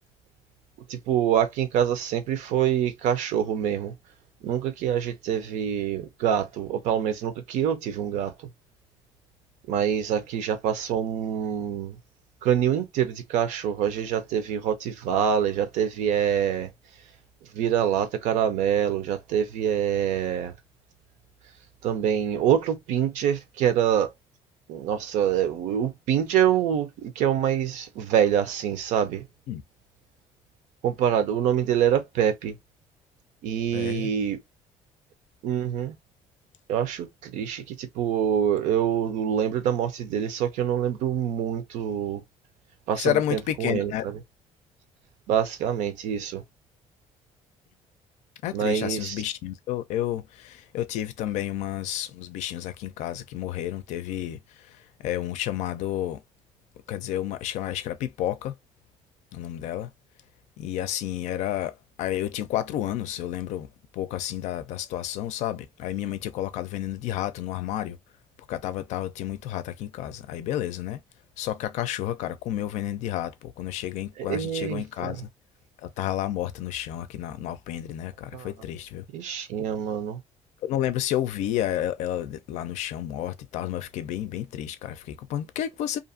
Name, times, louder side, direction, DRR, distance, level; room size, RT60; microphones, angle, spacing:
voice 1, 0.9-3.9 4.4-8.3 9.7-12.0 12.4-16.7 17.5-20.5 21.8-24.1 24.7-29.2 30.8-32.5 33.4-34.4 35.4-36.0 36.7-42.2 42.9-44.2 45.3-46.4 48.5-49.1 74.2-75.1 78.3-78.5 79.1-80.2, right 9 dB, 80° right, 0.7 m, -25 dB
voice 2, 33.7-34.1 43.0-44.0 48.4-54.4 55.0-56.2 56.9-58.5 59.3-59.9 60.6-61.7 62.0-63.7 63.9-68.0 68.5-71.0 71.4-75.3 75.8-79.0 80.6-86.0, left 12 dB, 70° left, 0.4 m, -30 dB
2.6 x 2.5 x 2.5 m
cardioid pair, 135°, 12 cm